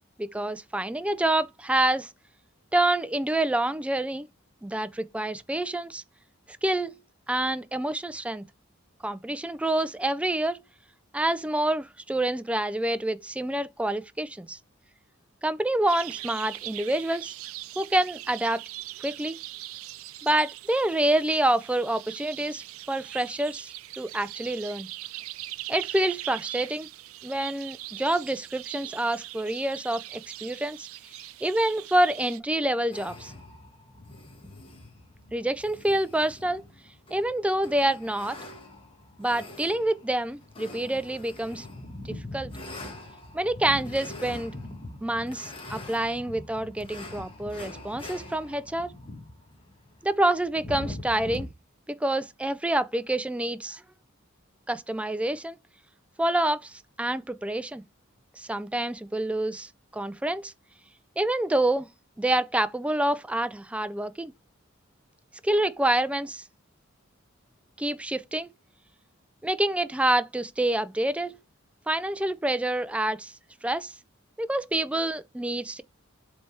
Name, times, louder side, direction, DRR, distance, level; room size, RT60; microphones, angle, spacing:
voice 1, 0.2-2.1 2.7-4.3 4.6-6.0 6.5-7.0 7.3-8.4 9.0-10.6 11.1-14.6 15.4-17.3 17.8-18.6 19.0-19.4 20.2-24.9 25.7-26.9 27.2-30.9 31.4-33.3 35.3-36.6 37.1-38.4 39.2-41.7 42.0-42.5 43.3-44.5 45.0-49.0 50.0-51.5 51.9-53.8 54.7-55.6 56.2-57.8 58.4-60.5 61.2-61.9 62.2-64.3 65.4-66.4 67.8-68.5 69.4-71.4 71.9-73.3 73.6-73.9 74.4-75.8, right 1 dB, 5° right, 0.3 m, -27 dB
sound 1, 15.9-32.4, right 16 dB, 85° right, 0.4 m, -41 dB
sound 2, 32.9-51.5, left 1 dB, 25° left, 1.3 m, -42 dB
7.6 x 3.3 x 4.3 m
head